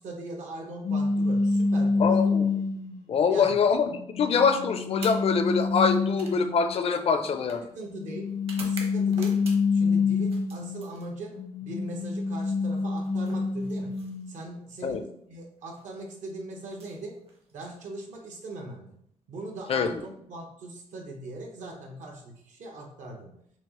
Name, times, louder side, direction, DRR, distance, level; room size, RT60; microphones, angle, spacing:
voice 1, 0.0-2.3 3.2-3.6 7.6-8.3 8.6-9.3 9.7-11.3 11.6-13.9 14.3-17.1 17.5-18.9 19.3-23.3, right 2 dB, 75° right, 1 dB, 1.0 m, -40 dB
sound 1, 0.8-3.0 3.7-6.8 7.9-10.9 11.3-14.3, left 4 dB, 85° left, 0.8 m, -27 dB
voice 2, 2.0-2.5 3.1-7.6 14.8-15.0 19.7-19.9, left 5 dB, 50° left, 8 dB, 0.4 m, -24 dB
sound 2, 4.9-9.8 10.2-11.5 12.7-14.5 15.6-15.8 16.6-17.8, right 3 dB, 50° right, 0.9 m, -47 dB
5.9 x 2.1 x 3.0 m, 0.72 s
cardioid pair, 105°, 13 cm